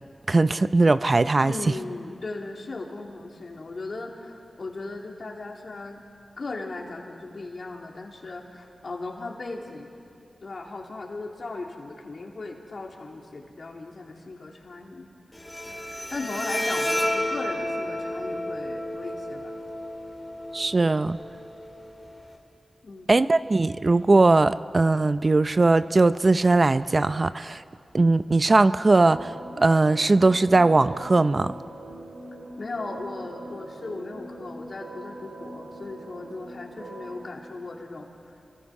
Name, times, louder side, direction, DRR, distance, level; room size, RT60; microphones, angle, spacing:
voice 1, 0.3-1.5 20.5-21.2 23.1-27.6 27.9-31.5, right 3 dB, 45° right, 14 dB, 0.5 m, -20 dB
voice 2, 1.4-6.0 6.4-9.9 10.4-15.1 15.6-19.6 22.8-23.1 32.6-38.5, left 3 dB, 65° left, 1 dB, 3.0 m, -37 dB
Bowed string instrument, 15.3-22.3, left 1 dB, 10° left, 4.0 m, -32 dB
sound 1, 29.0-37.3, right 1 dB, 75° right, 3.9 m, -41 dB
29.0 x 23.0 x 4.9 m, 2.5 s
cardioid pair, 50°, 0 cm